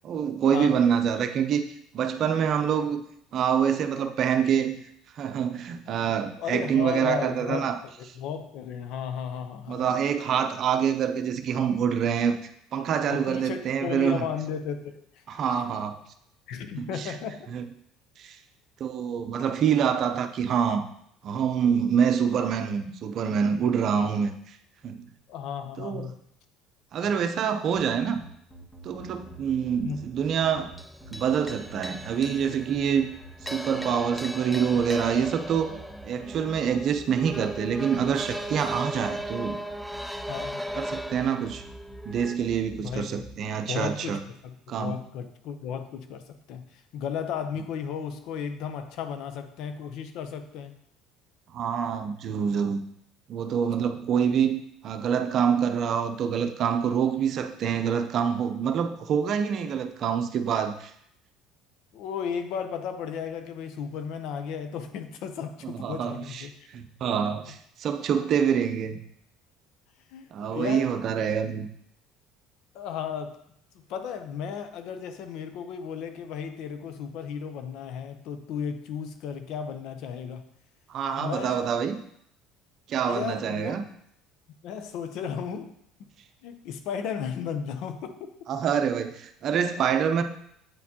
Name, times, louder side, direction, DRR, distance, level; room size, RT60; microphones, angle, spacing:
voice 1, 0.0-1.7 1.9-3.0 3.3-4.8 5.2-7.8 9.7-12.4 12.7-14.2 15.3-16.0 16.8-17.2 17.5-17.6 18.2-18.4 18.8-20.9 21.2-24.6 24.8-25.1 25.8-26.1 26.9-28.2 28.8-30.7 31.1-33.1 33.4-35.7 36.0-39.6 40.8-41.6 42.0-44.2 44.7-45.0 51.5-52.8 53.3-60.9 65.6-69.0 70.3-71.7 80.9-82.0 82.9-83.8 88.5-90.2, right 7 dB, 55° right, 8 dB, 0.6 m, -26 dB
voice 2, 6.4-7.7 8.0-10.0 13.1-15.2 16.5-17.5 25.3-26.1 27.0-27.1 29.8-30.0 40.3-40.6 42.8-43.2 43.7-46.2 46.5-50.8 61.9-66.5 70.1-71.0 72.7-73.4 73.9-80.4 81.1-81.7 83.1-83.7 84.6-85.7 86.4-88.3, left 7 dB, 65° left, 8 dB, 0.6 m, -34 dB
sound 1, 27.7-43.3, right 1 dB, 20° left, 1.8 m, -47 dB
sound 2, 29.0-42.4, equal, ahead, 0.4 m, -38 dB
8.2 x 4.2 x 2.9 m, 0.70 s
supercardioid pair, 85°, 0 cm